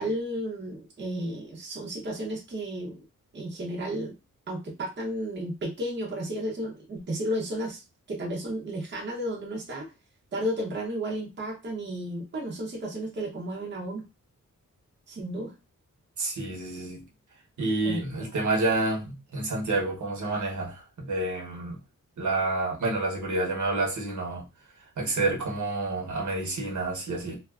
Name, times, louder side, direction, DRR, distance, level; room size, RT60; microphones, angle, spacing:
voice 1, 0.0-3.0 3.3-4.1 4.5-9.9 10.3-14.0 15.1-15.5 17.8-18.0, right 1 dB, 35° right, 0.6 m, -33 dB
voice 2, 16.2-17.0 17.6-21.8 22.2-24.4 25.0-27.4, right 2 dB, 65° right, 0.9 m, -29 dB
2.4 x 2.3 x 2.3 m
wide cardioid pair, 145°, 32 cm